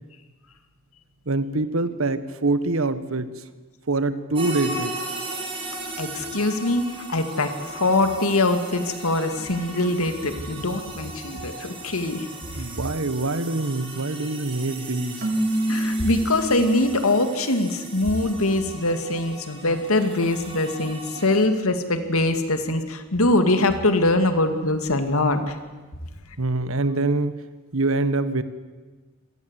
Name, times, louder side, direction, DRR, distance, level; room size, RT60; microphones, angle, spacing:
voice 1, 1.2-3.4 3.9-4.9 12.6-15.2 26.4-27.3 27.7-28.4, right 2 dB, 75° right, 13 dB, 1.4 m, -24 dB
sound 1, 4.3-21.5, right 2 dB, 25° right, 4.0 m, -37 dB
voice 2, 6.0-12.3 15.7-25.6, left 2 dB, 85° left, 8 dB, 2.4 m, -23 dB
Keyboard (musical), 15.2-17.2, right 1 dB, 45° right, 3.3 m, -26 dB
26.5 x 18.0 x 8.3 m, 1.3 s
head